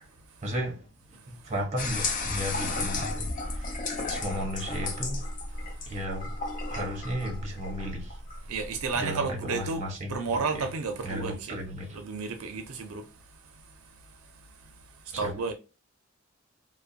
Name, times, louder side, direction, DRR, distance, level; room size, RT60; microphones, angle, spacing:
voice 1, 0.4-0.8 1.1-3.8 4.1-5.2 5.9-6.3 6.7-8.2 9.0-10.4 11.0-12.0 15.1-15.3, equal, 35° right, 0.7 m, -34 dB
sound 1, 1.8-9.0, left 2 dB, 40° left, 0.4 m, -33 dB
voice 2, 8.5-11.6 11.9-13.0 15.2-15.5, right 4 dB, 85° right, 0.5 m, -32 dB
2.4 x 2.1 x 2.5 m
head